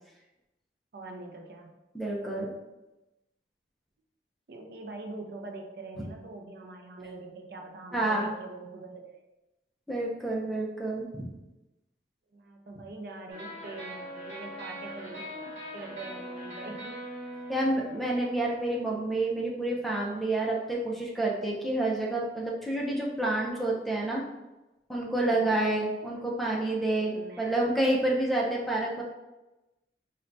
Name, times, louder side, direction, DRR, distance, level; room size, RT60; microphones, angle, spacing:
voice 1, 0.9-1.8 4.5-9.2 12.3-16.9 25.2-25.6 27.0-27.7, right 2 dB, 60° right, 2 dB, 0.4 m, -43 dB
voice 2, 1.9-2.5 7.9-8.3 9.9-11.3 17.5-24.2 24.9-29.0, right 2 dB, ahead, -3 dB, 0.4 m, -29 dB
sound 1, 13.3-19.1, equal, 40° right, 1.1 m, -42 dB
4.2 x 2.1 x 2.6 m, 1.0 s
head